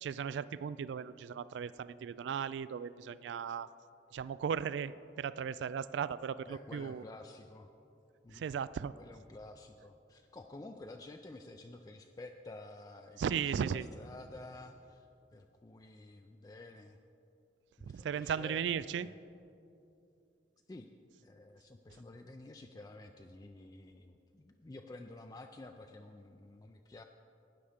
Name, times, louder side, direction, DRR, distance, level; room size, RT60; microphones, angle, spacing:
voice 1, 0.0-3.7 4.1-4.9 5.2-7.0 8.3-8.9 13.2-13.9 17.9-19.1, right 7 dB, 85° right, 17 dB, 0.3 m, -36 dB
voice 2, 6.5-7.7 8.2-8.5 8.9-15.1 15.3-17.0 17.8-19.1 20.7-20.9 21.2-27.0, left 2 dB, 20° left, 5 dB, 0.3 m, -51 dB
12.5 x 9.3 x 5.0 m, 2.7 s
head